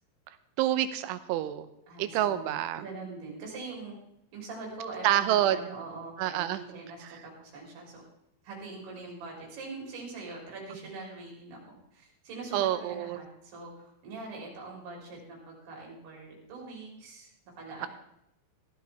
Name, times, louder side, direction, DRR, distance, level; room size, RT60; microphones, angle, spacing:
voice 1, 0.6-1.7 2.0-2.8 5.0-5.6 6.2-6.6 12.5-13.2 17.8-17.9, right 12 dB, 85° right, 12 dB, 3.1 m, -27 dB
voice 2, 1.9-3.9 4.3-8.0 8.4-17.3 17.6-17.9, right 3 dB, 60° right, -2 dB, 5.5 m, -43 dB
16.0 x 12.5 x 3.5 m, 0.79 s
omnidirectional pair, 5.4 m